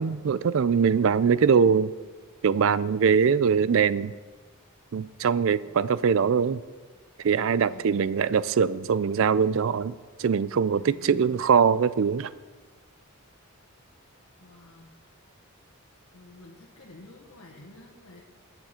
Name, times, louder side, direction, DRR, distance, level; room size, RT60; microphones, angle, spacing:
voice 1, 0.0-1.9 2.4-4.1 4.9-6.6 7.2-9.9 10.2-12.3, right 6 dB, 65° right, 17 dB, 0.4 m, -22 dB
voice 2, 7.7-8.2 10.8-11.5 14.4-14.9 16.1-18.2, left 2 dB, 75° left, -3 dB, 1.3 m, -50 dB
19.0 x 7.0 x 4.4 m, 1.4 s
head